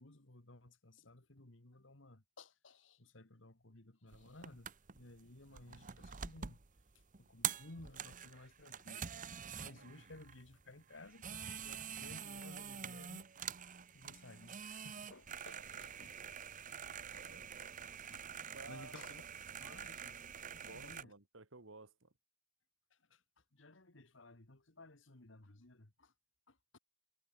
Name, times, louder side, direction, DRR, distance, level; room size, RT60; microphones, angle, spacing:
voice 1, 0.0-6.6 7.2-9.1 9.6-13.3 13.6-13.7 13.9-16.2 18.1-18.3 18.7-19.2 19.6-20.2 20.5-21.1 22.9-26.1 26.5-26.8, left 2 dB, 70° left, 2.1 m, -57 dB
sound 1, 4.1-21.0, right 8 dB, 40° right, 1.0 m, -46 dB
voice 2, 15.5-15.9 17.1-17.5 18.5-19.1 20.6-22.1, right 3 dB, 80° right, 2.3 m, -55 dB
head